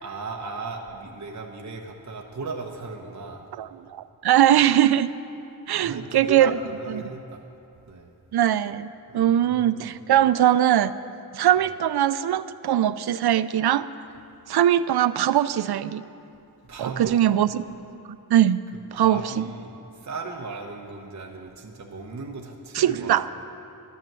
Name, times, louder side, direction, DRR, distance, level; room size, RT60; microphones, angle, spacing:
voice 1, 0.0-3.4 5.7-7.4 7.9-8.1 9.1-9.9 16.6-17.2 19.0-23.2, right 3 dB, 45° right, 0 dB, 1.1 m, -36 dB
voice 2, 3.6-5.1 5.7-6.6 8.3-10.9 11.3-13.9 14.5-16.0 16.8-17.6 18.3-18.6 18.9-19.4 22.7-23.3, right 11 dB, 80° right, 15 dB, 0.5 m, -21 dB
12.0 x 11.0 x 7.5 m, 2.7 s
wide cardioid pair, 125°, 38 cm